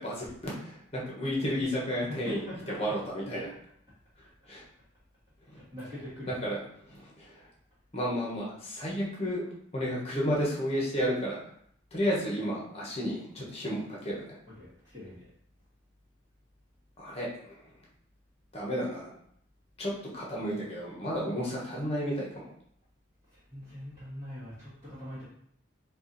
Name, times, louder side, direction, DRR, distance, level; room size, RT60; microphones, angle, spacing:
voice 1, 0.0-2.4 2.7-3.5 4.5-4.6 5.5-5.6 6.3-7.3 7.9-9.4 9.7-11.4 11.9-14.4 17.0-17.6 18.5-19.1 19.8-22.4, equal, 30° left, -4 dB, 1.3 m, -32 dB
voice 2, 2.1-2.7 5.7-6.3 14.6-15.3 23.5-25.2, left 1 dB, 25° right, -13 dB, 1.8 m, -42 dB
4.6 x 2.6 x 4.1 m, 0.68 s
head